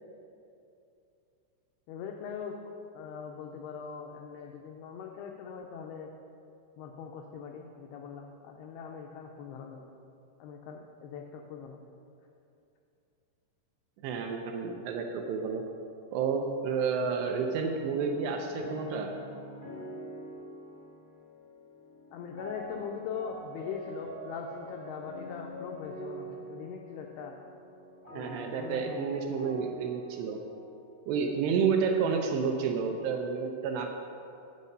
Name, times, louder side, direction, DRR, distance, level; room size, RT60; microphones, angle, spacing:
voice 1, 1.9-2.6 2.9-6.1 6.8-9.9 10.4-11.8 22.1-27.4 28.1-29.1 32.0-32.2, left 6 dB, 90° left, 2 dB, 2.2 m, -41 dB
voice 2, 14.0-15.6 16.1-19.1 28.1-30.4 31.1-33.9, right 5 dB, 80° right, 2 dB, 2.5 m, -30 dB
sound 1, 17.5-31.5, equal, 60° left, 0.7 m, -45 dB
8.5 x 8.0 x 5.3 m, 2.6 s
omnidirectional pair, 5.2 m